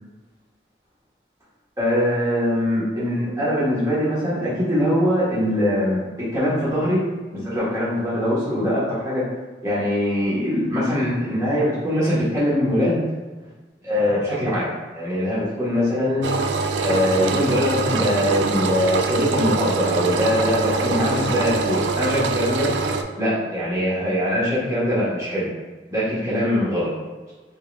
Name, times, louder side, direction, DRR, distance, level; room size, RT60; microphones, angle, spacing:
voice 1, 1.8-7.0 7.3-9.2 9.6-13.0 13.8-16.3 16.8-22.7 23.2-25.5 25.9-26.9, equal, 20° right, -9 dB, 1.4 m, -22 dB
Engine, 16.2-23.0, right 4 dB, 75° right, 0.3 m, -24 dB
4.5 x 3.6 x 2.4 m, 1.3 s
head